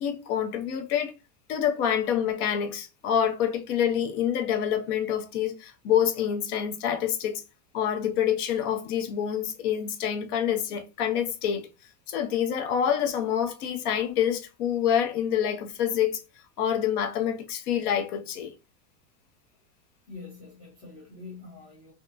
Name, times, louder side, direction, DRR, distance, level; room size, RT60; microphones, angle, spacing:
voice 1, 0.0-1.1 1.5-7.4 7.7-11.7 12.1-16.2 16.6-18.5, left 9 dB, 65° left, 0.7 m, -27 dB
voice 2, 20.1-21.9, left 4 dB, 10° left, 0.4 m, -44 dB
2.7 x 2.4 x 2.2 m
supercardioid pair, 160°, 48 cm